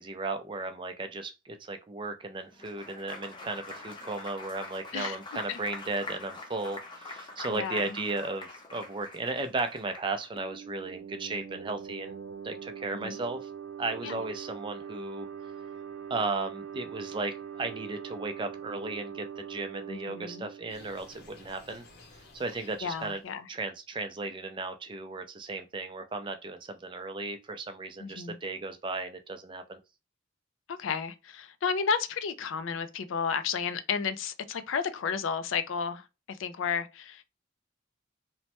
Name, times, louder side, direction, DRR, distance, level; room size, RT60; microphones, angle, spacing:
voice 1, 0.0-12.2 12.4-13.5 13.8-15.3 16.1-21.8 22.3-23.2 23.5-29.8, right 3 dB, 25° right, 0.4 m, -35 dB
Applause, 2.5-10.3, left 3 dB, 25° left, 0.5 m, -44 dB
voice 2, 7.5-8.0 12.9-13.2 14.0-14.2 19.9-20.5 22.8-23.5 28.0-28.4 30.7-37.2, left 6 dB, 80° left, 0.4 m, -32 dB
sound 1, 10.4-21.8, right 8 dB, 80° right, 0.5 m, -43 dB
sound 2, 20.7-23.4, left 2 dB, 55° left, 0.7 m, -55 dB
3.0 x 2.1 x 2.9 m
head